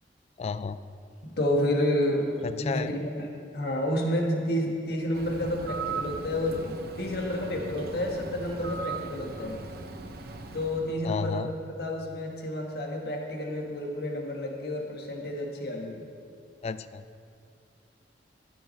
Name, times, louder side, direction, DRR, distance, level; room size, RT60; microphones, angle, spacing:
voice 1, 0.4-0.8 2.4-2.9 11.0-11.5 16.6-17.0, left 5 dB, 35° left, 14 dB, 0.3 m, -32 dB
voice 2, 1.2-9.6 10.5-16.0, left 1 dB, 60° left, 1 dB, 1.4 m, -30 dB
Bird, 5.1-11.0, right 4 dB, 60° right, 0.8 m, -38 dB
13.0 x 8.0 x 4.4 m, 2.5 s
head